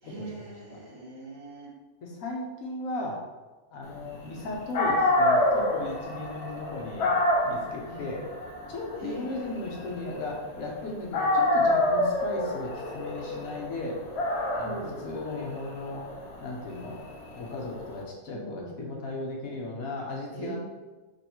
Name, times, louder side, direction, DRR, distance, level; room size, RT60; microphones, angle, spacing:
voice 1, 0.0-1.7 7.9-8.1 9.0-9.7 14.6-15.0 18.3-19.0 20.3-20.6, right 3 dB, 50° right, -4 dB, 1.1 m, -41 dB
voice 2, 2.0-3.2 3.7-7.1 7.4-8.2 8.7-14.0 14.5-16.1 16.4-17.0 17.3-20.6, left 2 dB, 75° left, -1 dB, 1.2 m, -36 dB
Dog, 4.4-4.5 4.7-10.8 11.1-17.9, left 1 dB, 55° left, 0.8 m, -27 dB
3.1 x 2.9 x 4.3 m, 1.2 s
omnidirectional pair, 1.5 m